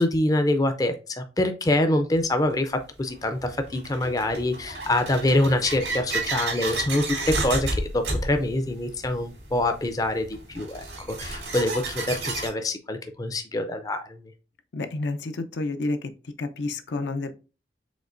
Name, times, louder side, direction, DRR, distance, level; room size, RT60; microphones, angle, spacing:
voice 1, 0.0-14.2, left 1 dB, 20° left, 7 dB, 0.4 m, -25 dB
sound 1, 2.1-2.2 3.1-12.5, right 2 dB, 85° right, 2.3 m, -31 dB
voice 2, 14.7-16.1 16.4-17.3, left 2 dB, 80° left, 8 dB, 0.5 m, -29 dB
5.1 x 3.6 x 2.5 m, 0.33 s
head